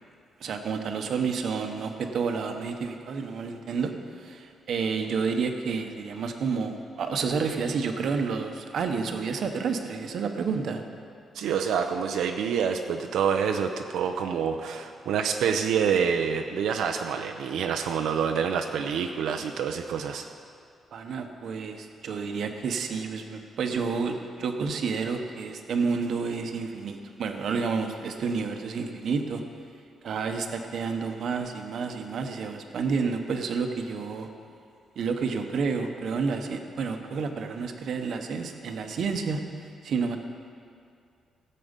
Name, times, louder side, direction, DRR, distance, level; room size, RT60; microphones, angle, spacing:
voice 1, 0.4-3.9 4.2-10.8 20.9-29.4 30.0-34.3 35.0-40.2, right 5 dB, 55° right, 5 dB, 0.9 m, -30 dB
voice 2, 11.3-20.3, right 7 dB, 90° right, 5 dB, 0.6 m, -27 dB
16.5 x 7.6 x 5.2 m, 2.3 s
cardioid pair, 180°, 0 cm